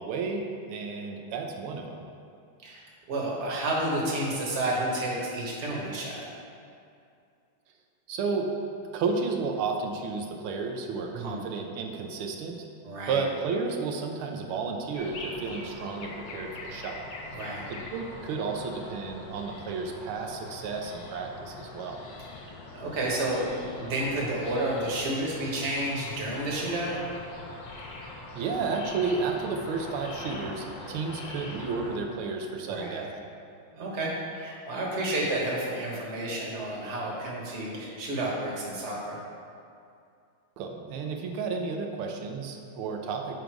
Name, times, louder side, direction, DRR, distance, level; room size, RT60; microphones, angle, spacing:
voice 1, 0.0-2.0 8.1-12.7 13.1-17.0 17.7-22.0 28.3-33.1 40.6-43.4, right 4 dB, 90° right, 3 dB, 1.6 m, -32 dB
voice 2, 2.6-6.3 11.1-11.4 12.8-13.2 17.3-17.6 22.7-27.0 32.7-33.0 33.7-39.2, right 1 dB, 40° right, -4 dB, 1.4 m, -31 dB
sound 1, 14.9-32.0, left 2 dB, 70° left, 1.5 m, -42 dB
7.6 x 5.2 x 4.6 m, 2.4 s
omnidirectional pair, 2.3 m